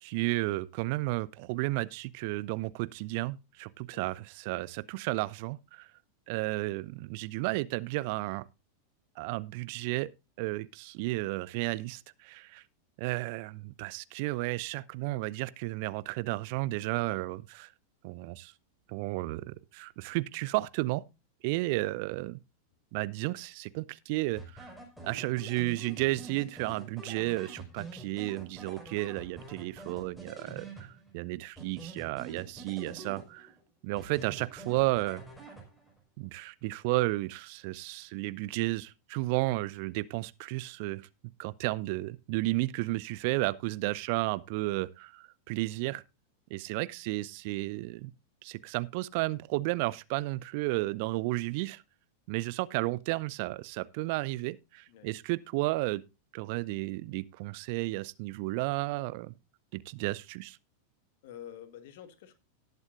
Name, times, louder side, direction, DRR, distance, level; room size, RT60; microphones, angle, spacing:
voice 1, 0.0-5.9 6.3-8.4 9.2-10.1 10.4-12.6 13.0-17.7 18.0-18.5 18.9-21.0 21.4-22.4 22.9-24.7 25.0-33.5 33.8-35.2 36.2-41.0 41.4-46.0 46.5-48.1 48.4-51.8 52.3-56.0 56.3-59.3 59.7-60.6, right 21 dB, 45° right, 0.6 m, -33 dB
voice 2, 21.7-22.0 54.9-55.1 61.2-62.4, left 10 dB, 50° left, 1.6 m, -49 dB
sound 1, 24.4-31.2 31.6-33.6 34.0-36.0, right 3 dB, 5° left, 5.2 m, -46 dB
18.5 x 8.0 x 2.5 m
figure-of-eight pair, 90°, 0 cm